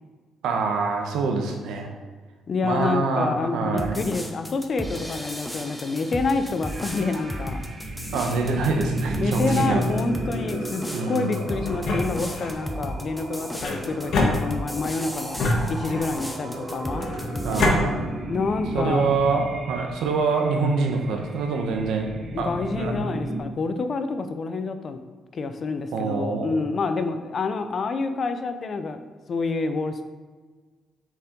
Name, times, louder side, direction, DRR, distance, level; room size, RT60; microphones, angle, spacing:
voice 1, 0.4-1.9 2.6-4.0 8.1-9.8 10.9-11.5 17.4-18.0 18.7-22.1 22.4-22.9 25.9-26.6, right 4 dB, 85° right, 3 dB, 1.0 m, -25 dB
voice 2, 2.5-7.7 9.2-15.4 15.7-17.1 18.3-19.1 22.3-25.0 25.3-30.0, left 4 dB, 50° left, 8 dB, 0.6 m, -28 dB
sound 1, 3.8-17.6, equal, 5° left, 0.8 m, -35 dB
sound 2, 6.6-23.4, right 1 dB, 45° right, 1.3 m, -33 dB
sound 3, 11.6-12.6 13.6-14.9 15.4-16.2 17.0-17.8, left 2 dB, 65° left, 1.5 m, -25 dB
7.1 x 4.4 x 3.8 m, 1.4 s
cardioid pair, 90°, 0 cm